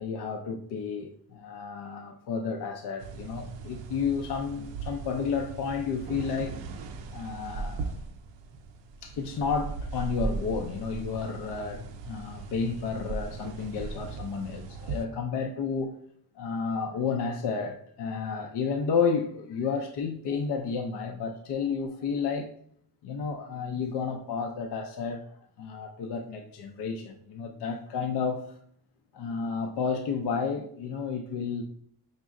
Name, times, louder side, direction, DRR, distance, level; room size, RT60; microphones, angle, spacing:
voice 1, 0.0-6.6 7.1-7.9 9.0-16.0 16.4-22.5 23.0-25.3 25.6-28.6 29.1-31.6, left 5 dB, 65° left, 0.5 m, -31 dB
sound 1, 3.0-15.0, right 4 dB, 85° right, 0.6 m, -38 dB
5.1 x 2.1 x 3.6 m
cardioid pair, 75°, 43 cm